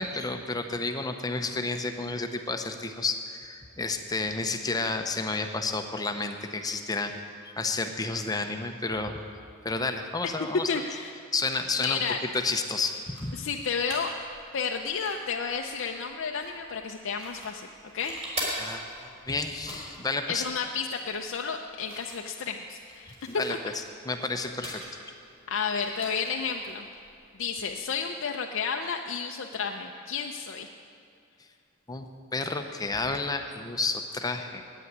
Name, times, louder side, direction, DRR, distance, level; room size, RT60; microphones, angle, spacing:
voice 1, 0.0-7.1 7.6-9.2 9.6-10.7 11.3-12.0 12.3-13.4 18.6-20.4 23.1-24.8 31.9-34.6, left 3 dB, 20° left, 6 dB, 0.6 m, -31 dB
voice 2, 10.7-11.1 11.8-12.2 13.4-14.1 14.5-17.7 17.9-18.1 20.3-23.1 23.5-23.6 25.5-26.9 27.4-30.7, left 6 dB, 60° left, 3 dB, 0.5 m, -31 dB
sound 1, 12.8-27.9, right 1 dB, 30° right, 3.7 m, -43 dB
9.1 x 8.5 x 9.5 m, 2.4 s
head